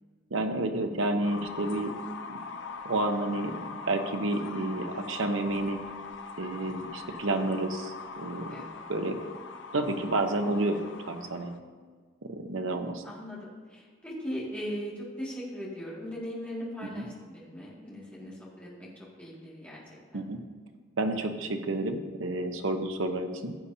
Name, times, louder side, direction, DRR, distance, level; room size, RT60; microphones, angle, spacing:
voice 1, 0.3-1.9 2.3-2.4 2.8-5.8 6.4-8.6 8.9-9.2 9.7-11.5 12.2-13.0 17.0-17.1 20.1-20.4 21.0-23.5, right 2 dB, 90° right, 6 dB, 0.9 m, -30 dB
sound 1, 1.2-11.6, left 4 dB, 70° left, 0.6 m, -42 dB
voice 2, 8.5-8.9 12.7-20.3, equal, 5° left, -7 dB, 2.2 m, -39 dB
15.5 x 8.2 x 2.8 m, 1.5 s
head